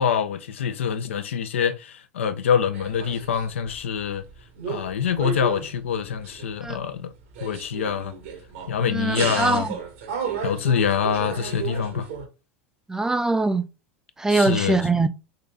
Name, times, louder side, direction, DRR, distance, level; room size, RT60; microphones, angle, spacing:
voice 1, 0.0-4.2 4.7-7.1 7.4-8.1 8.7-9.7 10.4-12.1 14.3-14.8, left 7 dB, 85° left, 0.5 m, -25 dB
sound 1, 2.7-3.8 4.1-4.9 5.2-6.8 7.2-8.8 9.1-12.3, right 6 dB, 75° right, 1.1 m, -33 dB
voice 2, 8.9-9.8 12.9-13.7 14.2-15.1, right 3 dB, 10° right, 0.5 m, -22 dB
3.8 x 2.7 x 3.3 m
hypercardioid pair, 95°, 7 cm